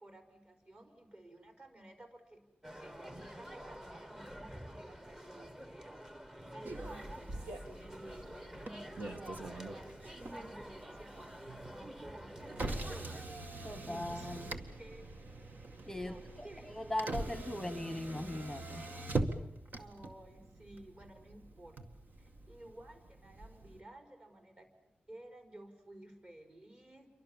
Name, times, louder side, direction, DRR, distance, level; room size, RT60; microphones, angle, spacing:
voice 1, 0.0-2.4 2.8-5.9 6.5-13.2 13.8-15.1 16.0-16.8 19.3-19.5 19.8-21.8 22.2-24.7 25.1-27.1, right 1 dB, 35° right, 5 dB, 5.2 m, -54 dB
sound 1, 2.6-13.2, equal, 15° right, 1.5 m, -49 dB
Motor vehicle (road), 6.6-23.8, right 2 dB, 60° right, 2.1 m, -43 dB
voice 2, 13.6-14.5 15.9-18.9, left 1 dB, 10° left, 10 dB, 1.1 m, -40 dB
28.5 x 24.5 x 7.4 m, 0.82 s
wide cardioid pair, 125°, 3 cm